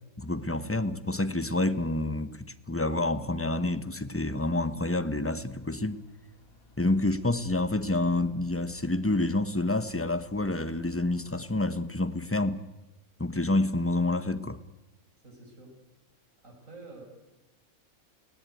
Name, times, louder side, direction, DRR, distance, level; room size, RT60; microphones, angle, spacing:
voice 1, 0.2-6.0 6.8-12.7 13.2-14.6, left 2 dB, 10° left, 0.9 m, -28 dB
sound 1, 5.0-11.8, equal, 70° left, 2.7 m, -56 dB
voice 2, 15.2-15.7 16.4-17.0, right 3 dB, 60° right, 6.1 m, -48 dB
29.5 x 16.5 x 9.3 m
omnidirectional pair, 1.5 m